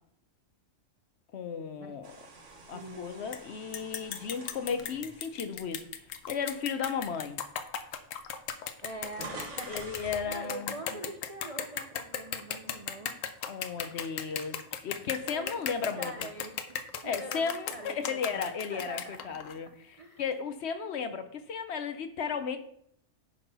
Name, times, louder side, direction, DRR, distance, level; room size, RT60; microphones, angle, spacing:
voice 1, 1.3-2.1 2.7-5.9 6.3-7.4 9.7-10.7 13.5-16.3 17.0-22.6, left 6 dB, 65° left, 9 dB, 0.9 m, -35 dB
sound 1, 2.0-6.3 6.8-7.0 7.9-8.0 8.2-10.3, right 3 dB, 70° right, 1.6 m, -47 dB
voice 2, 2.7-3.3 8.8-13.3 15.3-15.5 16.0-16.8 17.0-19.3 20.0-20.3, right 2 dB, 35° right, 4 dB, 0.6 m, -44 dB
sound 2, 3.3-3.4 3.7-19.6, left 8 dB, 90° left, 1.1 m, -37 dB
10.0 x 4.2 x 5.4 m, 0.70 s
omnidirectional pair, 1.3 m